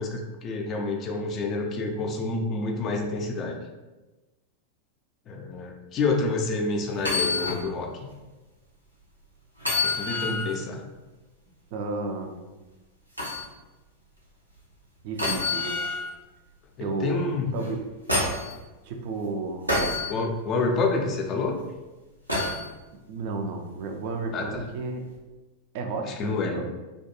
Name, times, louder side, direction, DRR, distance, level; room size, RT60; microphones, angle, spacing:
voice 1, 0.0-3.6 5.3-8.1 9.8-10.8 16.8-17.5 20.1-21.6 24.3-24.6 26.0-26.7, left 3 dB, 30° left, 2 dB, 0.4 m, -28 dB
sound 1, 7.0-7.6 8.1-8.2 9.6-10.6 13.2-13.4 15.2-16.1 17.6-18.5 19.7-20.1 22.3-22.7 24.4-24.6, left 2 dB, 90° right, 0.6 m, -27 dB
voice 2, 11.7-12.4 15.0-15.8 16.8-17.2 17.5-17.9 18.8-19.8 23.1-25.1 25.7-26.7, right 3 dB, 45° right, 4 dB, 0.3 m, -32 dB
2.3 x 2.2 x 2.8 m, 1.1 s
figure-of-eight pair, 90°, 0 cm